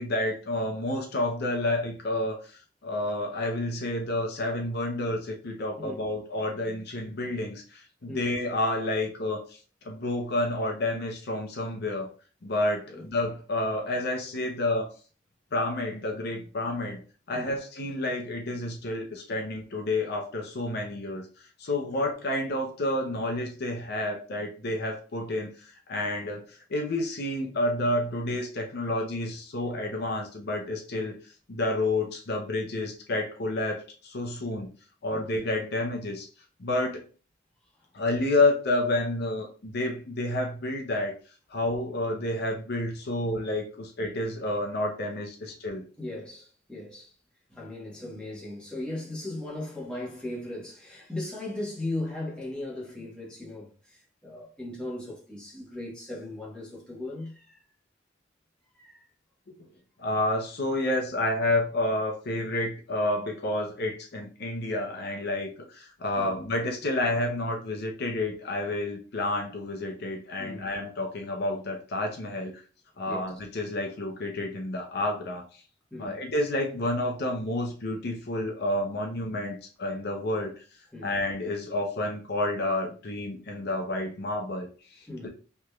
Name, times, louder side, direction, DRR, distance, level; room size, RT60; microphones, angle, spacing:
voice 1, 0.0-9.6 9.8-12.1 12.4-14.9 15.5-17.0 17.3-21.3 21.6-34.7 35.0-36.3 36.6-37.0 37.9-41.1 41.5-45.8 59.5-59.6 60.0-72.6 73.0-75.6 76.0-80.5 81.0-85.3, left 1 dB, 60° left, 0.6 m, -30 dB
voice 2, 46.0-47.1 47.5-57.6 58.8-59.1 66.2-66.3 70.4-70.6 73.0-73.3 75.9-76.2 80.9-81.1 85.1-85.3, left 1 dB, 5° left, 1.2 m, -37 dB
3.4 x 3.0 x 2.3 m
head